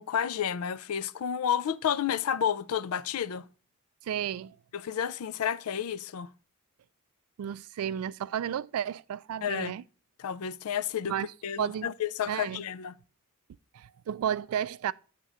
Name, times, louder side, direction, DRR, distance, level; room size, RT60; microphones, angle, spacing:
voice 1, 0.0-3.5 4.7-6.3 9.4-9.8 10.2-11.1 11.4-13.0, left 8 dB, 80° left, 0.4 m, -31 dB
voice 2, 4.0-4.6 7.4-9.8 11.1-11.3 11.6-11.9 12.3-12.6 13.7-14.9, right 9 dB, 80° right, 0.3 m, -32 dB
7.9 x 3.7 x 6.0 m
head